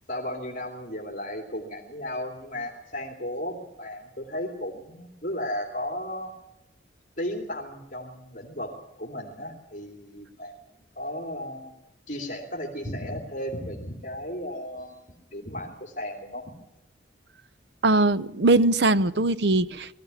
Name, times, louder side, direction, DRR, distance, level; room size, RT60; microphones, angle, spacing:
voice 1, 0.1-6.3 7.2-10.5 10.9-11.7 12.1-15.0 15.3-16.5, left 1 dB, 45° left, 2.9 m, -35 dB
voice 2, 17.8-19.9, right 2 dB, 60° right, 0.7 m, -21 dB
21.5 x 15.0 x 9.8 m
head